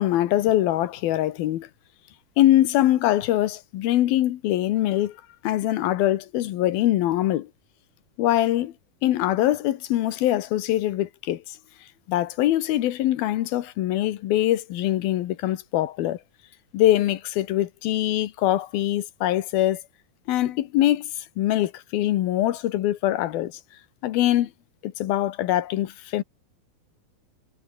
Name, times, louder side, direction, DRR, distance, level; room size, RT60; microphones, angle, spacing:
voice 1, 0.0-1.7 2.4-5.2 5.4-7.5 8.2-8.7 9.0-11.4 12.1-16.2 16.7-19.8 20.3-21.1 21.4-23.5 24.0-24.5 24.8-26.2, left 14 dB, 85° left, 3.1 m, -23 dB
omnidirectional pair, 4.1 m